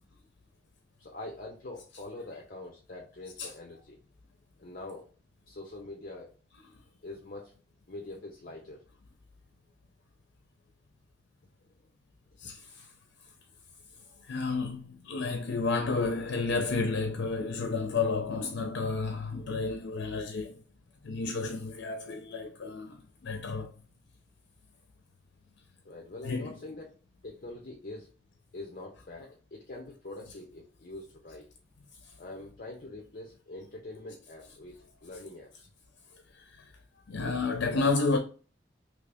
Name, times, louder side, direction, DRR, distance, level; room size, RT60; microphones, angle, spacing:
voice 1, 1.0-4.0 4.6-5.1 5.5-6.3 7.0-7.5 7.9-8.8 12.4-12.5 25.8-26.9 27.2-28.1 28.5-31.5 32.2-35.7, left 2 dB, 50° left, 0.6 m, -44 dB
voice 2, 12.4-12.9 14.2-20.6 21.0-23.7 26.2-26.5 36.3-36.6 37.1-38.2, left 3 dB, 90° left, 0.5 m, -31 dB
2.9 x 2.7 x 3.4 m
head